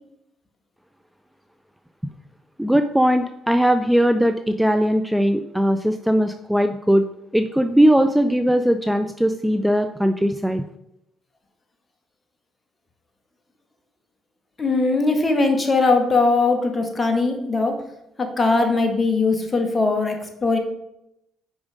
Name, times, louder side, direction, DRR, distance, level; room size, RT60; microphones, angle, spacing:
voice 1, 2.6-7.0 7.3-10.6, equal, 5° right, 8 dB, 0.5 m, -19 dB
voice 2, 14.6-17.8 18.2-20.6, left 3 dB, 30° left, 5 dB, 1.7 m, -20 dB
6.3 x 5.0 x 5.1 m, 0.84 s
hypercardioid pair, 50°, 0 cm